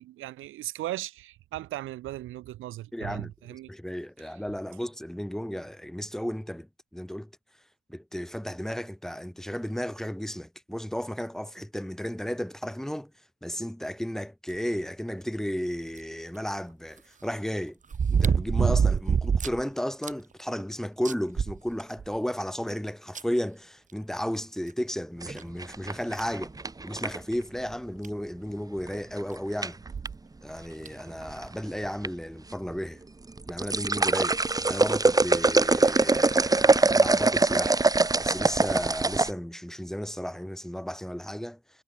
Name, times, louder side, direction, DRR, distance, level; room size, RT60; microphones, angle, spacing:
voice 1, 0.0-3.7, right 15 dB, 90° right, 6.5 m, -37 dB
voice 2, 2.9-3.3 3.7-7.3 7.9-13.1 13.4-17.8 18.1-26.6 26.8-29.8 30.4-33.0 33.5-34.4 34.7-37.8 38.2-41.8, equal, ahead, 5.3 m, -34 dB
sound 1, 16.0-16.1 17.9-19.6 20.0-20.1 20.6-20.7 21.1-22.2 23.2-23.3 24.7-24.8 25.4-25.5 26.2-26.4 27.7-27.8 28.0-28.1 29.8-30.2 30.9-31.0, right 6 dB, 40° right, 2.1 m, -25 dB
sound 2, 25.2-27.3 28.9-29.2 29.6-30.1 31.0-31.5 31.8-32.1 32.5-32.6 33.3-39.3, right 3 dB, 20° right, 1.6 m, -23 dB
cardioid pair, 90°, 20 cm